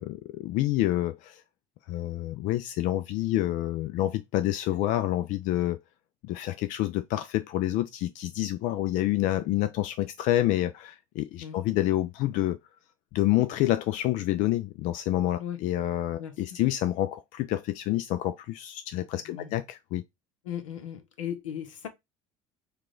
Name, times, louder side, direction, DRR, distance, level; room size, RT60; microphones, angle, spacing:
voice 1, 0.0-1.4 1.9-5.8 6.2-12.6 13.1-20.0, left 14 dB, 50° left, 0.4 m, -28 dB
voice 2, 19.2-19.5 20.4-21.9, left 9 dB, 75° left, 0.8 m, -37 dB
4.6 x 2.3 x 3.8 m
figure-of-eight pair, 65°, 17 cm